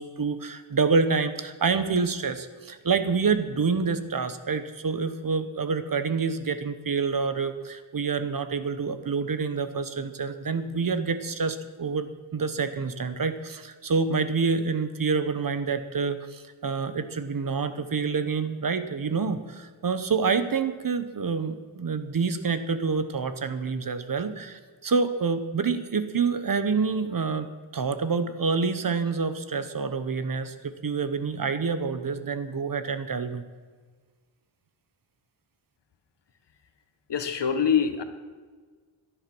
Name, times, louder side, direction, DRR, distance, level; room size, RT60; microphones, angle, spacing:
voice 1, 0.0-33.4, right 5 dB, 40° right, 11 dB, 1.0 m, -27 dB
voice 2, 37.1-38.0, left 7 dB, 55° left, 8 dB, 1.5 m, -24 dB
17.5 x 11.5 x 6.1 m, 1.5 s
wide cardioid pair, 165°, 50 cm